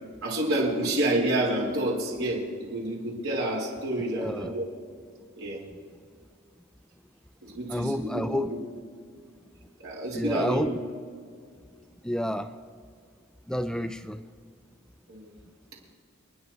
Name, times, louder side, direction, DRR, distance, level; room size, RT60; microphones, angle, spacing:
voice 1, 0.2-2.4 2.7-4.7 5.4-5.6 7.4-8.4 9.8-10.7 15.1-15.3, right 1 dB, 90° right, -4 dB, 4.6 m, -28 dB
voice 2, 4.1-4.5 7.7-8.5 10.1-10.8 12.0-12.6 13.5-14.2, equal, 5° left, 10 dB, 0.3 m, -30 dB
30.0 x 10.5 x 3.1 m, 2.1 s
head